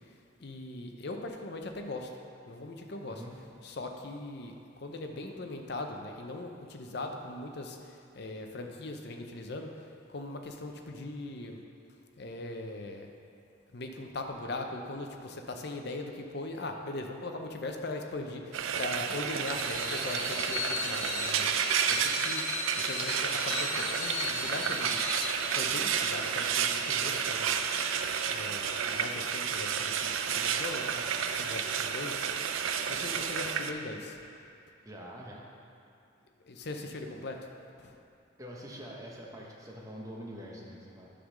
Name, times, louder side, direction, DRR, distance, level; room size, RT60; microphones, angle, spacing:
voice 1, 0.4-2.1 2.5-3.2 3.6-11.6 12.2-13.1 13.7-21.4 21.9-22.5 22.8-25.0 25.5-27.8 28.3-32.2 32.9-34.2 36.4-37.4 37.8-38.0, left 2 dB, 55° left, 3 dB, 0.6 m, -40 dB
Frying (food), 18.5-33.7, right 7 dB, 90° right, 0.4 m, -31 dB
Screech, 19.4-25.4, left 4 dB, 85° left, 0.8 m, -37 dB
voice 2, 21.4-21.7 34.8-35.4 38.4-41.1, equal, 15° right, -3 dB, 1.0 m, -45 dB
10.0 x 3.7 x 6.4 m, 2.5 s
head